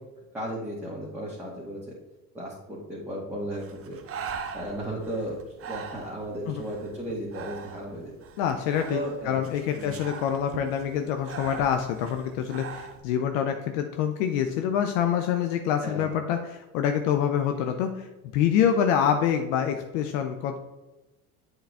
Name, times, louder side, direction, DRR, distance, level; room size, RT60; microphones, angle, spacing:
voice 1, 0.3-1.8 2.3-4.0 4.5-5.3 5.7-8.1 8.9-9.4 9.8-9.9 15.8-16.1, right 1 dB, 5° right, -6 dB, 1.7 m, -34 dB
Breathing, 3.5-13.0, right 6 dB, 30° right, 0.8 m, -41 dB
voice 2, 8.4-18.1 18.3-20.6, left 8 dB, 65° left, 6 dB, 0.7 m, -26 dB
7.8 x 4.0 x 3.4 m, 1.1 s
hypercardioid pair, 70°, 44 cm